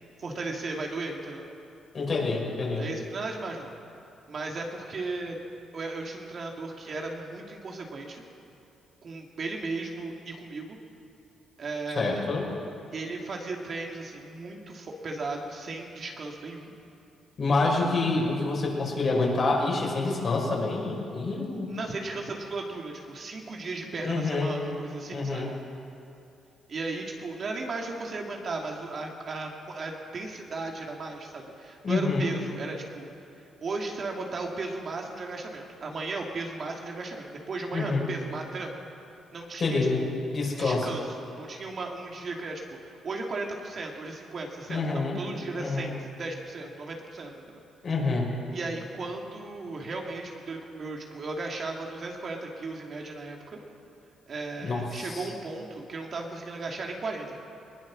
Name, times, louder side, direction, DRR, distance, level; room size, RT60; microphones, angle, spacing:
voice 1, 0.2-1.5 2.8-3.7 4.3-5.4 5.7-8.2 9.0-10.8 11.6-12.3 12.9-16.7 21.7-25.5 26.7-33.1 33.6-38.7 39.3-40.3 40.6-47.6 48.5-53.6 54.3-57.4, right 3 dB, 45° right, 0 dB, 2.7 m, -36 dB
voice 2, 1.9-2.8 11.9-12.5 17.4-21.7 24.0-24.5 25.1-25.5 31.8-32.3 37.7-38.1 39.6-40.0 40.3-40.9 44.7-45.2 45.6-45.9 47.8-48.3 54.6-55.3, left 3 dB, 45° left, -2 dB, 6.0 m, -27 dB
20.5 x 20.0 x 6.4 m, 2.7 s
cardioid pair, 90°, 0 cm